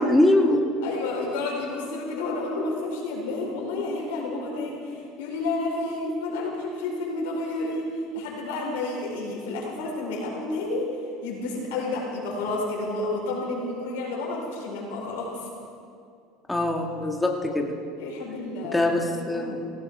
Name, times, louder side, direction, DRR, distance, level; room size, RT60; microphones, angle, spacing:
voice 1, 0.0-0.6 16.5-17.7 18.7-19.7, left 1 dB, 10° left, 1 dB, 1.6 m, -22 dB
voice 2, 0.8-10.9 11.2-15.5 18.0-19.6, left 2 dB, 90° left, -2 dB, 4.6 m, -30 dB
16.5 x 15.0 x 4.8 m, 2.4 s
supercardioid pair, 110°, 0 cm